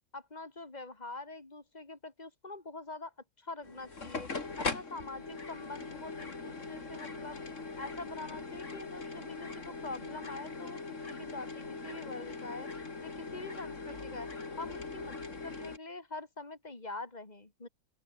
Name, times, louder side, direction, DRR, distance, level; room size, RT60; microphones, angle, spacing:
voice 1, 0.1-4.3 4.6-7.4 7.8-12.7 13.0-14.3 14.6-17.7, left 3 dB, 25° left, 3.3 m, -45 dB
sound 1, 3.6-15.8, left 3 dB, 55° left, 3.1 m, -41 dB
open air
omnidirectional pair, 1.6 m